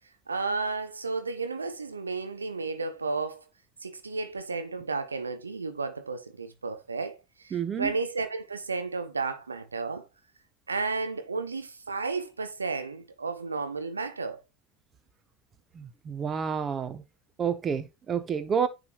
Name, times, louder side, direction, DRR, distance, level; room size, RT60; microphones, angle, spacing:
voice 1, 0.3-3.4 3.8-10.1 10.7-14.4, right 4 dB, 85° right, 0.7 m, -33 dB
voice 2, 7.5-7.9 15.7-17.0 17.4-18.7, right 7 dB, 30° right, 0.9 m, -29 dB
9.8 x 4.0 x 3.0 m
figure-of-eight pair, 70°, 0 cm